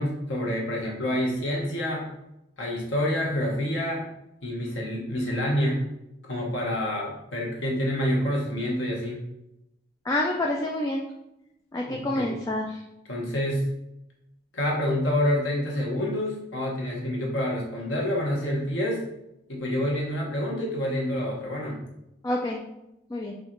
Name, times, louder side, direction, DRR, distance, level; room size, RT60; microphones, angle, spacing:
voice 1, 0.0-2.1 2.6-4.0 4.4-5.8 6.3-9.2 11.9-12.4 13.1-13.7 14.5-19.0 19.5-21.8, left 1 dB, 85° left, -3 dB, 1.0 m, -27 dB
voice 2, 10.0-11.0 11.7-12.8 22.2-22.6 23.1-23.3, left 1 dB, 20° left, -1 dB, 0.3 m, -27 dB
6.2 x 2.4 x 3.0 m, 0.88 s
head